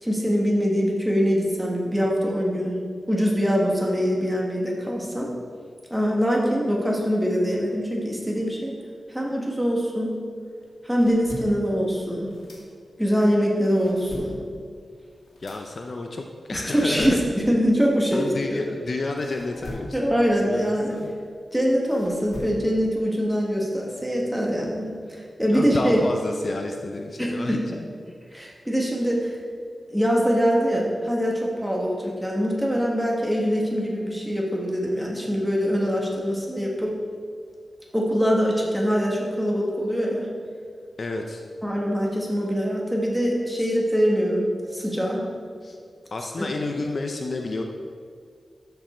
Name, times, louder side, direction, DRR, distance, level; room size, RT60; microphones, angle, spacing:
voice 1, 0.0-2.8 3.1-5.3 5.9-8.8 9.1-10.1 10.8-12.3 13.0-14.4 16.5-18.7 19.9-21.0 21.5-26.0 27.2-27.6 28.3-29.3 29.9-36.9 37.9-40.3 41.6-44.4 44.7-45.2 46.4-46.5, equal, 5° right, -3 dB, 1.6 m, -23 dB
sound 1, 10.6-13.1 13.5-18.8 19.2-22.9, left 1 dB, 65° left, 2.0 m, -42 dB
voice 2, 15.4-17.4 18.1-20.1 20.4-21.1 25.5-27.9 41.0-41.4 43.6-43.7 45.6-45.8 46.1-47.6, left 2 dB, 45° left, 3 dB, 0.6 m, -30 dB
13.0 x 5.4 x 4.4 m, 2.1 s
wide cardioid pair, 155°, 0 cm